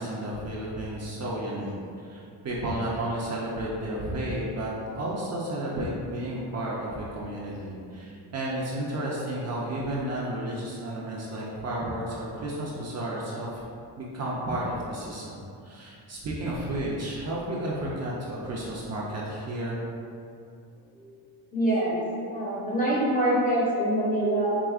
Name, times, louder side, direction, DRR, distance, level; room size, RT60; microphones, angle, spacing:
voice 1, 0.0-1.7 2.1-4.7 5.0-13.6 14.0-19.8, right 1 dB, 40° right, -5 dB, 0.5 m, -32 dB
voice 2, 21.5-22.0 22.3-24.6, right 1 dB, 20° left, -6 dB, 0.7 m, -25 dB
4.8 x 3.3 x 2.3 m, 2.5 s
cardioid pair, 180°, 43 cm